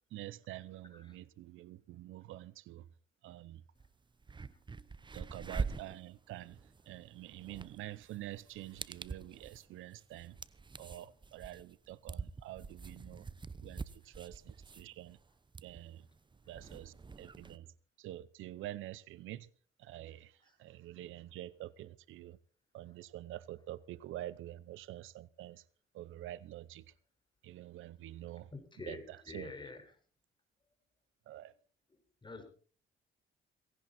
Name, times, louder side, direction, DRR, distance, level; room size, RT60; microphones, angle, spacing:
voice 1, 0.1-2.9 3.2-3.6 5.1-10.4 10.8-13.3 13.6-15.2 15.6-16.1 16.5-19.5 19.8-22.4 22.7-25.6 25.9-26.9 27.4-28.5 28.9-29.5 31.3-31.5, right 14 dB, 85° right, 0.8 m, -47 dB
sound 1, 3.8-3.9 4.2-17.6, right 4 dB, 25° right, 0.9 m, -45 dB
voice 2, 28.5-29.9 32.2-32.4, left 3 dB, 25° left, 4.9 m, -47 dB
18.0 x 17.0 x 4.3 m
cardioid pair, 90°, 20 cm